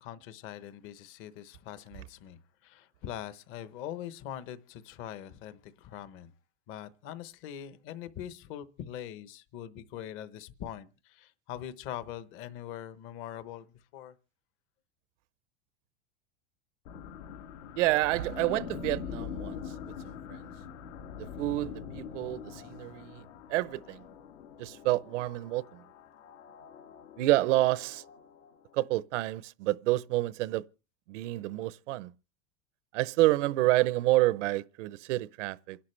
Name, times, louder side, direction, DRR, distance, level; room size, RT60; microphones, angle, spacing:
voice 1, 0.0-6.3 6.7-13.6 13.9-14.1, left 10 dB, 35° left, 1.0 m, -42 dB
sound 1, 16.9-28.8, left 7 dB, 75° left, 1.9 m, -44 dB
voice 2, 17.8-19.6 20.3-20.4 21.4-23.2 23.5-24.0 24.6-25.6 27.2-28.0 28.7-30.6 31.1-32.1 32.9-35.8, right 17 dB, 80° right, 0.8 m, -28 dB
28.0 x 11.5 x 3.2 m
supercardioid pair, 170°, 36 cm